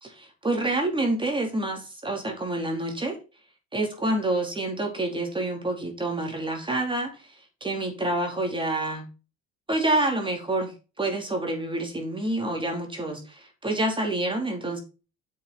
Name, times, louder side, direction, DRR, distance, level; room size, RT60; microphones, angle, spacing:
voice 1, 0.0-3.2 3.7-7.1 7.6-9.0 9.7-10.7 11.0-14.8, right 2 dB, 15° right, 1 dB, 4.5 m, -27 dB
8.8 x 7.8 x 4.3 m, 0.32 s
cardioid pair, 90°, 32 cm